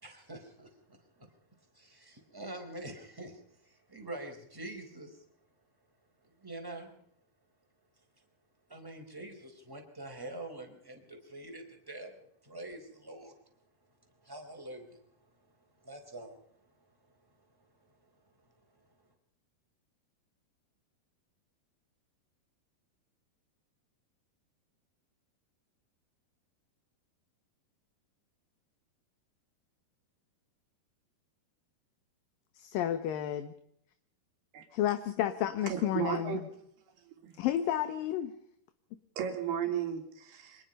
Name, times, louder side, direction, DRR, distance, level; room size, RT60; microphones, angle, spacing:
voice 1, 0.0-1.3 1.7-5.2 6.2-6.9 8.7-13.3 14.2-15.0 15.8-16.4, right 1 dB, 5° right, 3 dB, 4.0 m, -45 dB
voice 2, 32.5-33.5 34.7-36.4 37.4-38.3, left 11 dB, 65° left, 10 dB, 2.6 m, -31 dB
voice 3, 35.7-36.4 37.1-37.4 39.2-40.6, right 9 dB, 70° right, 4 dB, 5.1 m, -35 dB
25.5 x 20.0 x 5.5 m, 0.72 s
omnidirectional pair, 4.7 m